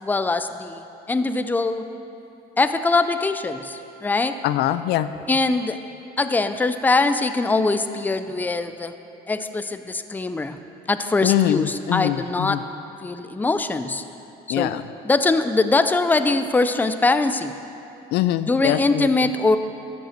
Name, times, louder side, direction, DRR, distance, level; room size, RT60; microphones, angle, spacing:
voice 1, 0.0-1.9 2.6-4.4 5.3-5.8 6.2-8.9 9.3-10.6 10.9-12.6 13.0-14.0 14.5-14.7 15.0-17.5 18.5-19.6, left 3 dB, 10° left, 10 dB, 0.4 m, -22 dB
voice 2, 4.4-5.1 11.2-12.6 14.5-14.8 18.1-19.3, left 13 dB, 75° left, 13 dB, 0.4 m, -23 dB
13.0 x 5.4 x 7.3 m, 2.7 s
cardioid pair, 110°, 17 cm